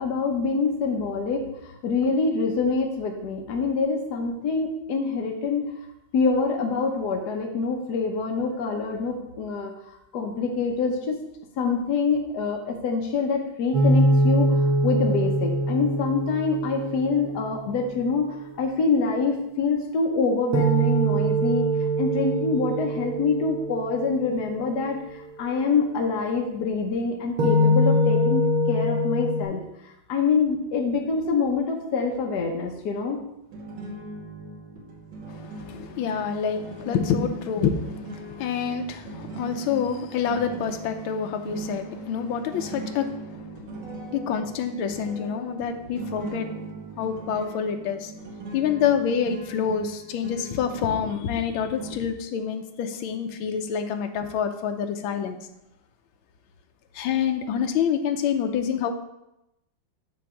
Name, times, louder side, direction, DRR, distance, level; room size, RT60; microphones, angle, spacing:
voice 1, 0.0-5.7 6.1-11.2 11.6-21.7 22.0-29.6 30.1-33.2, left 4 dB, 60° left, 1 dB, 1.2 m, -25 dB
sound 1, 13.7-17.9 20.5-24.7 27.4-29.4, equal, 80° right, 2.2 m, -23 dB
sound 2, 33.5-51.9, right 3 dB, 60° right, 1.9 m, -40 dB
voice 2, 35.3-43.6 44.1-46.5 47.0-48.1 48.5-55.4 56.9-58.9, left 7 dB, 75° left, 5 dB, 1.5 m, -27 dB
8.9 x 3.4 x 6.3 m, 0.87 s
omnidirectional pair, 2.3 m